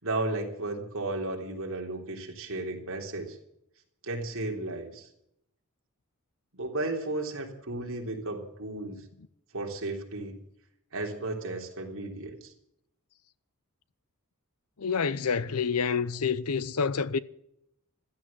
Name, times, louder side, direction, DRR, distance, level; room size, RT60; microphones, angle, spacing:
voice 1, 0.0-3.4 4.0-5.1 6.5-9.0 9.5-10.3 10.9-12.5, right 2 dB, 65° right, 3.5 m, -34 dB
voice 2, 14.8-17.2, left 5 dB, 85° left, 0.8 m, -28 dB
15.0 x 13.0 x 7.5 m
head